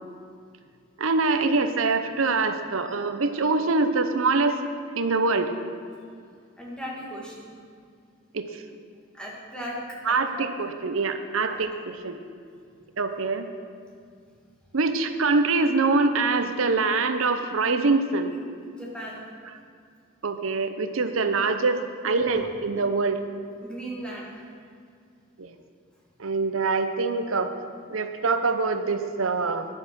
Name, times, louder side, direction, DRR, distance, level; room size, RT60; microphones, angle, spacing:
voice 1, 1.0-4.6 5.0-5.5 8.3-8.6 10.1-12.2 13.0-13.5 14.7-18.3 20.2-23.2 25.4-25.5 26.2-27.5 27.9-29.7, right 3 dB, 70° right, 8 dB, 0.8 m, -24 dB
voice 2, 6.5-7.6 9.1-9.8 10.1-10.5 11.0-11.2 11.5-11.6 18.7-19.2 22.1-22.4 23.6-24.4, equal, 5° left, -4 dB, 1.9 m, -38 dB
11.0 x 7.4 x 6.0 m, 2.3 s
head